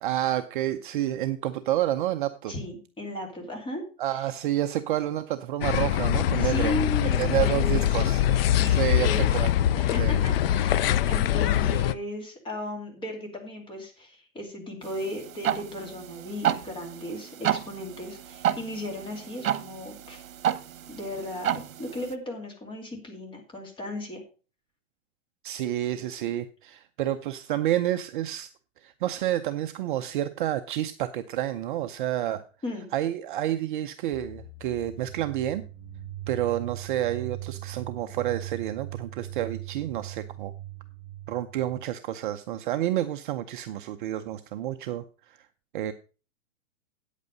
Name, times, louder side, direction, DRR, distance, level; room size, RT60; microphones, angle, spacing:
voice 1, 0.0-2.5 4.0-6.8 7.2-8.2 8.7-9.5 10.0-10.2 25.4-28.5 28.8-32.4 32.9-35.6 36.3-40.5 41.3-45.4 45.7-45.9, right 13 dB, 40° right, 9 dB, 0.6 m, -29 dB
voice 2, 2.5-3.8 4.1-4.3 6.4-8.1 8.5-9.3 9.8-20.2 20.9-24.2 32.6-32.9, left 1 dB, 10° left, 1 dB, 2.6 m, -36 dB
sound 1, 5.6-11.9, left 11 dB, 45° left, 0.5 m, -23 dB
sound 2, 14.8-22.1, right 10 dB, 75° right, 1.1 m, -31 dB
sound 3, 34.1-41.9, right 11 dB, 20° right, 2.0 m, -40 dB
8.9 x 8.3 x 5.1 m, 0.35 s
hypercardioid pair, 150°, 41 cm